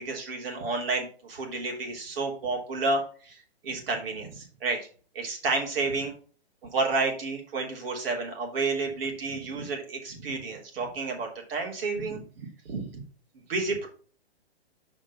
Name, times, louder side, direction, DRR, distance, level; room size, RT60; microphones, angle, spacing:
voice 1, 0.0-4.9 5.1-6.1 6.6-13.0 13.5-13.9, right 3 dB, 60° right, 1 dB, 3.3 m, -31 dB
6.7 x 5.1 x 5.5 m, 0.40 s
hypercardioid pair, 130°, 32 cm